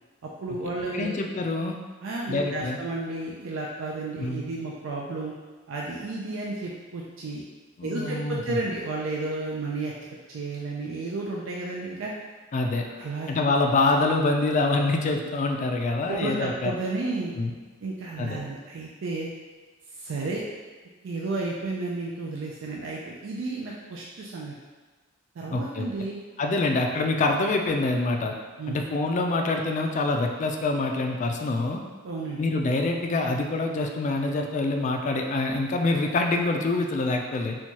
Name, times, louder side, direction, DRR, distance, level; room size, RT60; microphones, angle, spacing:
voice 1, 0.2-1.1 2.0-5.3 5.7-7.4 7.8-9.9 10.3-12.1 12.9-13.3 16.1-17.3 17.8-19.3 20.0-20.4 21.0-24.6 25.4-26.2 28.6-28.8 32.0-32.4, right 3 dB, 80° right, -3 dB, 0.4 m, -32 dB
voice 2, 0.9-1.8 2.3-2.8 4.2-4.4 7.8-8.6 12.5-12.9 13.3-16.7 17.3-17.5 18.2-18.4 25.5-25.9 26.4-28.3 28.7-31.8 32.4-37.6, left 2 dB, 40° left, 3 dB, 0.3 m, -25 dB
4.4 x 2.3 x 2.9 m, 1.4 s
head